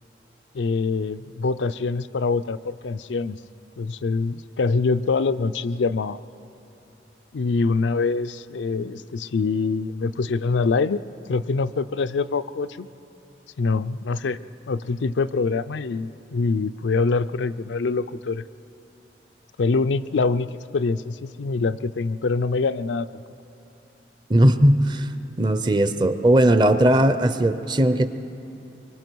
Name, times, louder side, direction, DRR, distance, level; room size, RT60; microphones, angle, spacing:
voice 1, 0.5-3.4 3.8-6.2 7.3-11.0 11.3-12.9 13.6-14.4 14.7-18.4 19.6-23.2, left 4 dB, 85° left, 12 dB, 0.4 m, -24 dB
voice 2, 24.3-25.1 25.4-28.1, right 1 dB, 25° right, 11 dB, 0.6 m, -18 dB
24.5 x 23.0 x 4.6 m, 2.9 s
head